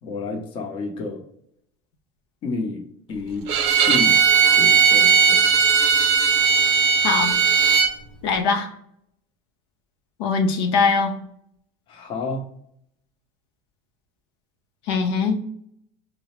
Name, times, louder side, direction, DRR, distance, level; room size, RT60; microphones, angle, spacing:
voice 1, 0.0-1.2 2.4-3.5 3.9-4.2 4.6-5.5 11.9-12.4, left 3 dB, 40° left, 3 dB, 0.7 m, -30 dB
Bowed string instrument, 3.5-7.9, right 6 dB, 85° right, 0.5 m, -17 dB
voice 2, 7.0-7.4 8.2-8.7 10.2-11.1 14.9-15.4, left 4 dB, 85° left, 4 dB, 0.6 m, -21 dB
4.6 x 2.0 x 3.0 m, 0.70 s
cardioid pair, 145°, 14 cm